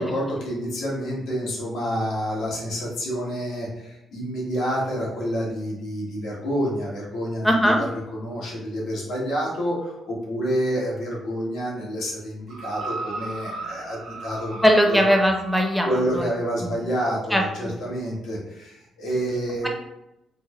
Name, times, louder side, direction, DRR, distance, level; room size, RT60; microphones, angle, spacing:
voice 1, 0.0-15.0 15.8-19.7, equal, 80° left, -5 dB, 1.3 m, -28 dB
voice 2, 7.4-7.8 14.6-15.9 16.1-16.2 16.6-16.7 17.3-17.7, equal, ahead, 2 dB, 0.6 m, -19 dB
sound 1, 12.5-16.1 17.0-17.1, right 3 dB, 80° right, 0.7 m, -36 dB
4.3 x 2.1 x 3.0 m, 0.89 s
cardioid pair, 90°, 0 cm